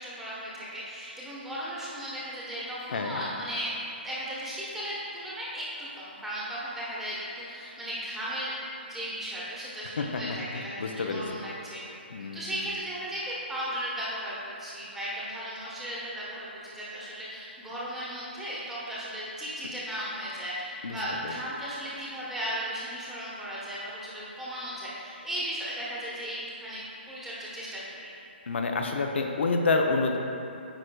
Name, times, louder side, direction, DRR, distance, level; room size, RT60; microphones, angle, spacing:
voice 1, 0.0-3.7 4.0-8.5 8.9-11.8 12.3-28.1, equal, 5° right, -8 dB, 1.0 m, -36 dB
voice 2, 10.5-11.2 12.1-12.4 20.8-21.0 21.2-21.3 28.5-30.2, left 3 dB, 75° left, 3 dB, 0.5 m, -28 dB
9.0 x 4.9 x 2.2 m, 2.7 s
hypercardioid pair, 150°, 6 cm